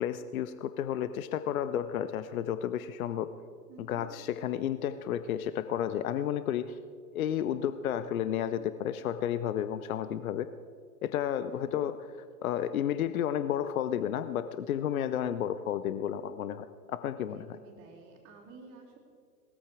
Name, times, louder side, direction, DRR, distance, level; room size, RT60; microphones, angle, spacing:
voice 1, 0.0-3.3 3.9-6.8 7.1-10.5 11.0-11.9 12.4-17.5, left 10 dB, 60° left, 12 dB, 0.8 m, -32 dB
voice 2, 3.7-4.1 8.3-8.6 11.5-11.9 15.4-15.5 17.3-19.0, right 4 dB, 30° right, -4 dB, 2.8 m, -52 dB
18.5 x 13.5 x 4.8 m, 2.1 s
figure-of-eight pair, 100°, 47 cm